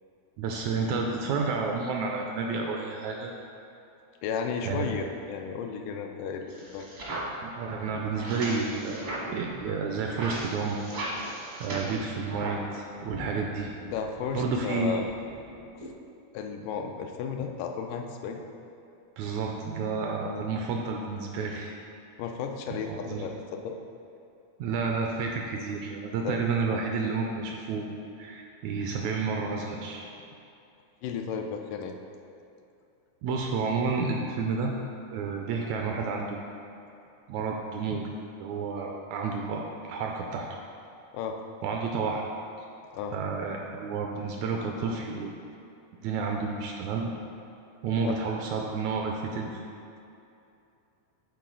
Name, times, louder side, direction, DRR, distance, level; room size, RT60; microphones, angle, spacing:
voice 1, 0.4-3.3 4.6-4.9 7.4-10.8 11.6-13.7 14.3-15.1 19.2-21.8 22.7-23.3 24.6-27.9 28.2-30.0 33.2-34.7 35.1-36.4 37.3-38.0 38.4-40.5 41.6-42.2 43.1-45.3 46.0-47.1 47.8-49.7, right 4 dB, 80° right, 1 dB, 1.7 m, -30 dB
voice 2, 4.2-6.9 13.9-15.1 16.3-18.4 20.3-20.5 22.2-23.8 26.3-26.4 31.0-32.0 41.1-41.4 42.9-43.2 48.0-48.2, left 6 dB, 90° left, 4 dB, 2.2 m, -34 dB
sound 1, 6.5-12.7 13.0-15.9, right 1 dB, 60° right, 0.8 m, -38 dB
9.2 x 4.1 x 3.8 m, 2.6 s
omnidirectional pair, 3.6 m